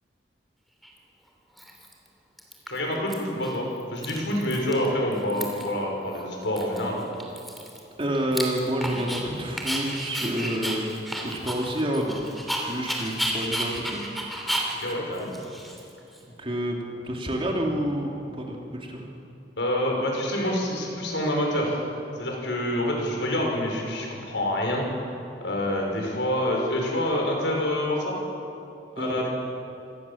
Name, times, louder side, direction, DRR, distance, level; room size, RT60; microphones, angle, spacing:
Dog, 0.8-0.9 1.6-2.1 2.4-3.1 3.4-3.6 3.8-4.9 5.1-5.8 6.1-6.2 6.6-9.2 9.6-16.2, equal, ahead, 3.0 m, -32 dB
voice 1, 2.7-7.0 14.8-15.3 19.6-21.8 22.1-24.9 25.4-28.2 29.0-29.3, left 1 dB, 85° left, 0 dB, 5.8 m, -27 dB
voice 2, 8.0-10.9 11.2-14.0 16.3-19.1 29.0-29.1, right 1 dB, 30° right, 0 dB, 2.8 m, -29 dB
26.5 x 19.0 x 7.2 m, 2.8 s
head